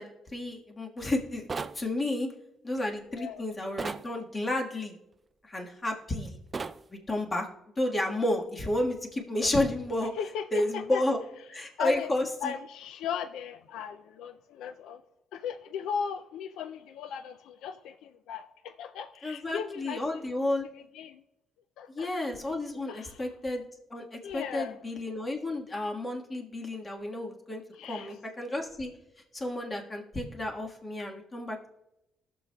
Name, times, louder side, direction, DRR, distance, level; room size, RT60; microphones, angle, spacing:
voice 1, 0.0-1.4 1.7-2.3 2.6-4.9 5.4-6.4 6.9-7.5 7.8-10.2 10.5-11.2 11.5-12.5 19.2-20.6 21.9-23.6 23.9-27.6 27.9-28.9 29.3-31.7, left 1 dB, 25° left, 1 dB, 1.5 m, -31 dB
sound 1, 1.5-1.8 3.8-4.1 6.5-6.8, right 4 dB, 35° right, 0.3 m, -34 dB
voice 2, 3.1-3.4 10.2-11.0 11.8-12.1 12.4-15.0 15.3-20.2 20.6-21.2 21.8-22.1 22.9-23.2 24.2-24.8 27.8-28.1, left 7 dB, 85° left, 10 dB, 0.3 m, -37 dB
19.5 x 6.7 x 2.2 m, 0.91 s
cardioid pair, 90°, 0 cm